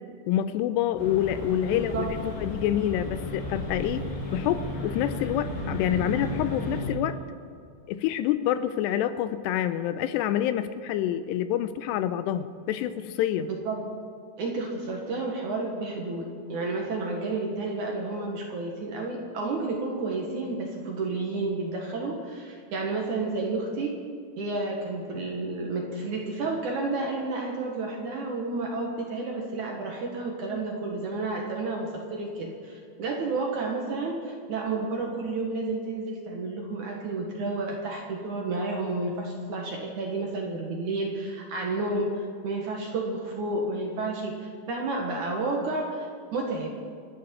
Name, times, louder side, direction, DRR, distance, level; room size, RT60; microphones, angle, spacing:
voice 1, 0.3-4.1 4.3-7.2 7.9-13.5, left 11 dB, 85° left, 12 dB, 2.7 m, -27 dB
sound 1, 1.0-6.9, left 2 dB, 55° left, 4.1 m, -34 dB
voice 2, 1.7-2.1 13.6-13.8 14.4-24.0 24.4-46.7, right 3 dB, 60° right, 0 dB, 2.2 m, -31 dB
28.0 x 9.4 x 4.4 m, 2.4 s
omnidirectional pair, 5.0 m